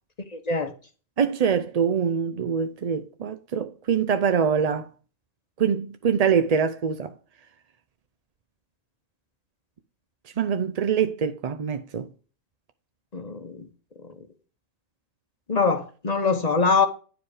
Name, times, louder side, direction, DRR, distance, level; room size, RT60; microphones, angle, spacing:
voice 1, 0.3-0.7 13.1-13.7 14.0-14.1 15.5-16.9, left 4 dB, 35° left, 1.0 m, -23 dB
voice 2, 1.2-4.9 5.6-7.1 10.4-12.1, right 7 dB, 50° right, 0.4 m, -24 dB
9.8 x 5.0 x 4.9 m
omnidirectional pair, 1.3 m